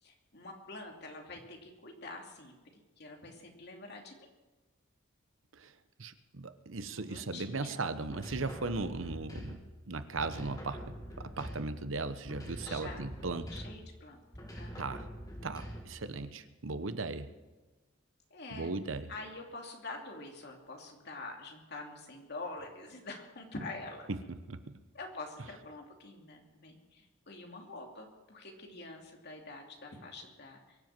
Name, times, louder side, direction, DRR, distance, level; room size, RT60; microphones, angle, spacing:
voice 1, 0.0-2.5 3.0-4.3 6.8-7.8 12.6-13.1 13.5-14.2 14.6-14.9 18.3-18.7 19.1-24.1 24.9-30.8, left 2 dB, 55° left, 1 dB, 2.7 m, -46 dB
voice 2, 6.0-9.6 9.9-13.5 14.8-15.0 15.4-17.3 18.5-19.1 24.1-24.2 24.5-24.8, right 3 dB, 75° right, 11 dB, 1.0 m, -37 dB
sound 1, 8.1-9.8 10.2-11.9 12.2-14.0 14.3-16.1, equal, 20° left, 2.2 m, -45 dB
23.0 x 7.9 x 7.5 m, 1.1 s
head